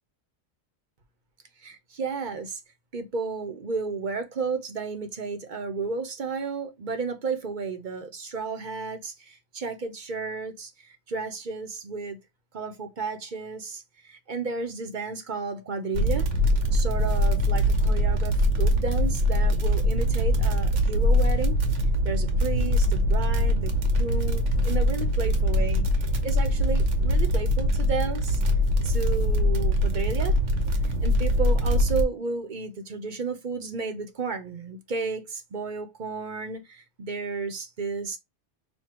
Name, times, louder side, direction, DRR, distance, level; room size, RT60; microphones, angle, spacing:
voice 1, 1.6-2.6 2.9-12.2 12.5-16.3 16.7-21.6 22.0-28.4 28.8-30.4 31.0-38.2, right 4 dB, 45° right, 0.8 m, -33 dB
sound 1, 15.9-32.0, equal, 75° right, 1.2 m, -23 dB
6.4 x 2.3 x 2.9 m
omnidirectional pair, 1.2 m